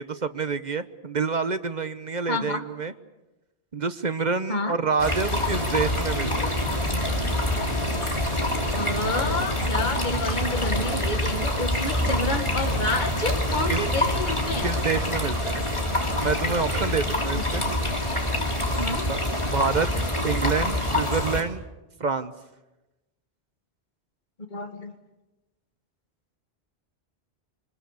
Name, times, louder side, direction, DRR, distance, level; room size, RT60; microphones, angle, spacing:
voice 1, 0.0-2.9 3.7-6.6 13.7-13.8 14.6-15.6 16.2-17.6 19.1-19.9 20.2-21.6 22.0-22.3, right 5 dB, 45° right, 11 dB, 1.1 m, -27 dB
voice 2, 2.3-2.6 4.5-4.7 8.7-14.7 17.3-17.8 18.8-19.1 24.5-24.9, left 2 dB, 45° left, 5 dB, 2.1 m, -29 dB
Wasser plaetschern, 5.0-21.4, left 1 dB, 25° left, 3.4 m, -26 dB
25.5 x 20.5 x 8.3 m, 1.0 s
omnidirectional pair, 1.1 m